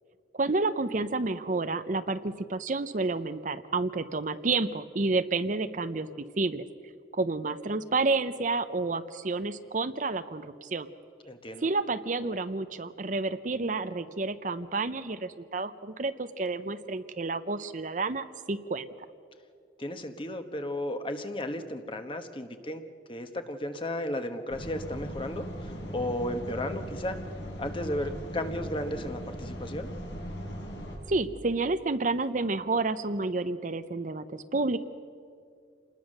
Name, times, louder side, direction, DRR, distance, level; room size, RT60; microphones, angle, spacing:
voice 1, 0.3-6.1 6.4-6.6 7.1-10.9 11.6-18.9 31.1-34.8, right 3 dB, 45° right, 11 dB, 0.7 m, -30 dB
voice 2, 11.3-11.7 19.8-22.8 23.1-27.2 27.6-29.9, left 1 dB, 30° left, 7 dB, 1.3 m, -34 dB
sound 1, 24.5-31.0, equal, 80° left, 6.3 m, -39 dB
28.0 x 20.0 x 6.6 m, 2.3 s
head